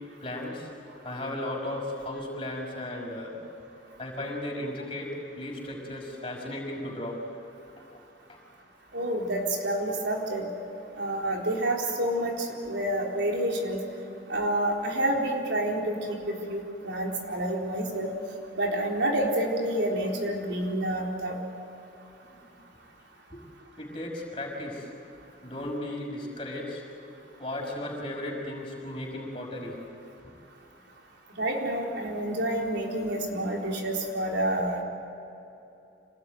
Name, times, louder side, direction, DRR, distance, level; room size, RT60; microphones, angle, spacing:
voice 1, 0.2-0.7 1.0-3.4 4.0-7.2 8.3-8.4 23.3-23.4 23.8-24.9 25.4-26.8 27.4-29.8, left 1 dB, 30° left, -1 dB, 5.9 m, -35 dB
voice 2, 8.9-10.5 11.0-13.8 14.3-18.1 18.6-21.4 31.4-34.8, right 1 dB, 75° right, 0 dB, 4.1 m, -28 dB
27.0 x 20.0 x 9.4 m, 2.9 s
head